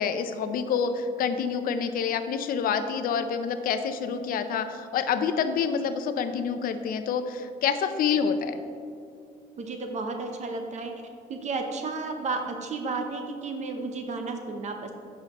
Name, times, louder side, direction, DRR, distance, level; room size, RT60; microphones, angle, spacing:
voice 1, 0.0-8.6, left 6 dB, 60° left, 10 dB, 0.5 m, -27 dB
voice 2, 9.6-10.9 11.3-15.0, right 3 dB, 45° right, 5 dB, 0.7 m, -32 dB
10.0 x 5.5 x 3.0 m, 2.4 s
cardioid pair, 110°, 17 cm